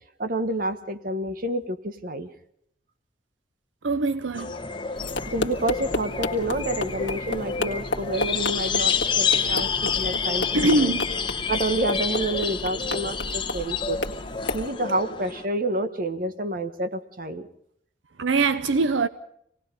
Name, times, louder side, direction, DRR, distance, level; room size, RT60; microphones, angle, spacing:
voice 1, 0.2-2.3 4.4-4.5 5.3-11.0 11.5-14.0 14.5-17.5, right 1 dB, 50° right, 1.4 m, -29 dB
voice 2, 3.8-4.6 10.5-11.1 18.2-19.1, right 3 dB, 90° right, 0.8 m, -22 dB
sound 1, 4.3-15.4, left 6 dB, 25° left, 1.2 m, -28 dB
sound 2, 5.0-14.7, left 2 dB, 80° left, 1.7 m, -32 dB
26.0 x 18.5 x 5.4 m
head